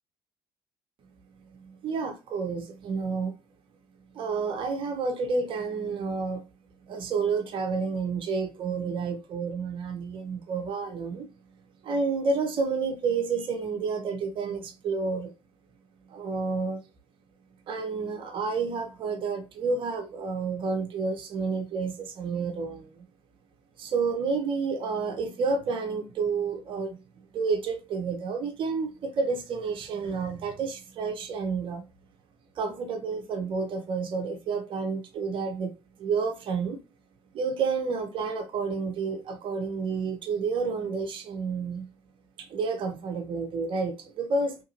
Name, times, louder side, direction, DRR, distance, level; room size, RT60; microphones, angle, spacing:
voice 1, 1.6-3.3 4.1-6.4 6.9-11.3 11.8-15.3 16.1-16.8 17.7-23.1 23.8-27.0 27.3-31.8 32.6-35.7 36.0-36.8 37.3-41.9 42.4-44.6, right 4 dB, 55° right, 0.8 m, -30 dB
2.9 x 2.6 x 2.8 m
hypercardioid pair, 60°, 10 cm